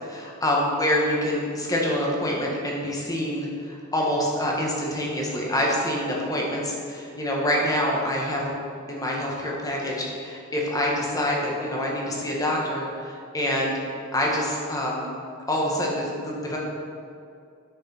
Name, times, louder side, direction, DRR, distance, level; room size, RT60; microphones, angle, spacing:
voice 1, 0.1-8.5 8.9-13.7 14.1-15.1 15.5-16.6, left 1 dB, 15° left, -3 dB, 1.4 m, -26 dB
9.4 x 6.1 x 4.4 m, 2.4 s
head